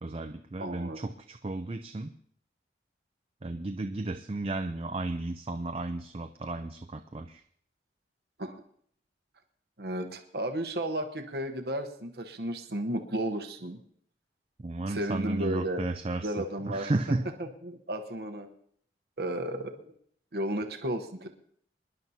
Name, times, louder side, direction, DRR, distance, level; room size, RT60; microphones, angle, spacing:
voice 1, 0.0-2.1 3.4-7.4 14.6-16.3 16.6-17.2, right 2 dB, 35° right, 7 dB, 0.5 m, -33 dB
voice 2, 0.6-1.0 8.4-8.6 9.8-13.8 14.9-15.9 16.2-16.9 17.4-18.5 19.2-19.9 20.3-21.3, right 1 dB, 60° right, 5 dB, 1.0 m, -33 dB
25.0 x 11.0 x 2.8 m, 0.64 s
head